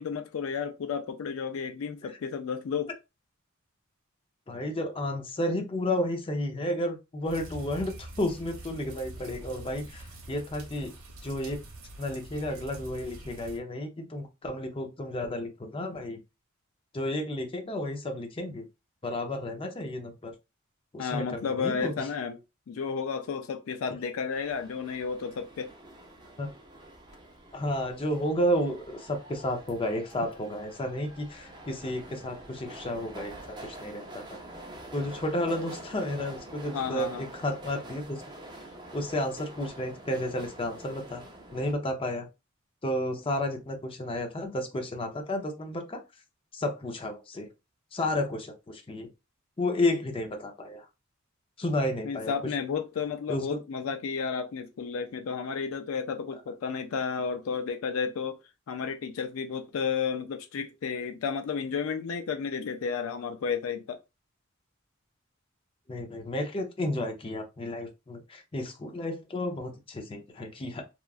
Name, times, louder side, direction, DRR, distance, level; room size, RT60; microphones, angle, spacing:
voice 1, 0.0-2.9 21.0-22.4 22.7-25.7 36.7-37.2 52.0-58.4 58.7-64.0, left 6 dB, 75° left, 0.4 m, -32 dB
voice 2, 4.5-10.9 11.2-11.6 12.0-16.2 16.9-18.7 19.0-20.3 20.9-22.1 26.4-26.5 27.5-34.4 34.9-38.2 38.9-41.2 41.5-42.3 42.8-46.0 46.5-47.5 47.9-49.1 49.6-50.9 51.6-52.3 53.3-53.6 65.9-70.8, left 1 dB, 25° left, 0.5 m, -32 dB
sound 1, 7.3-13.6, right 1 dB, 90° right, 0.8 m, -45 dB
sound 2, 24.3-41.7, right 1 dB, 20° right, 0.5 m, -46 dB
2.9 x 2.3 x 2.4 m
head